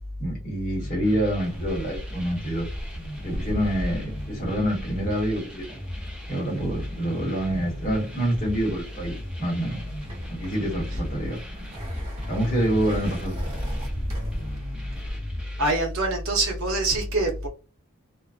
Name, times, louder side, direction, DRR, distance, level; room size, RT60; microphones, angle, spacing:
voice 1, 0.2-2.7 3.2-5.7 6.3-9.8 10.3-11.4 12.3-13.4, right 1 dB, 35° left, 1.0 m, -27 dB
sound 1, 0.8-15.7, equal, 5° right, 0.4 m, -39 dB
sound 2, 1.4-15.2, equal, 25° right, 0.8 m, -37 dB
voice 2, 15.6-17.5, right 2 dB, 70° right, 0.6 m, -24 dB
2.4 x 2.2 x 2.4 m
head